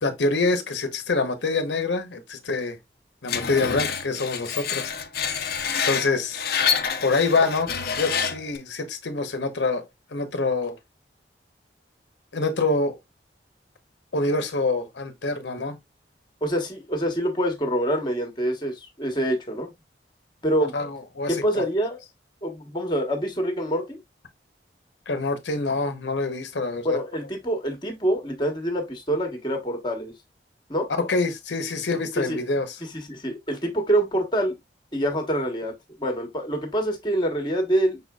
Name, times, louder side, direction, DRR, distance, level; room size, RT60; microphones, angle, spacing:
voice 1, 0.0-2.8 3.2-4.9 5.8-6.4 7.0-9.8 10.1-10.7 12.3-13.0 14.1-15.8 20.7-21.6 25.1-27.0 31.0-32.8, left 3 dB, 90° left, 0.9 m, -26 dB
Screech, 3.3-8.6, left 7 dB, 55° left, 0.6 m, -27 dB
voice 2, 16.4-19.7 20.4-20.7 21.3-22.0 22.4-24.0 26.8-30.1 30.7-30.9 32.2-32.4 32.9-34.6 34.9-35.7 36.0-38.0, right 1 dB, 25° left, 1.1 m, -26 dB
5.6 x 4.0 x 2.3 m
head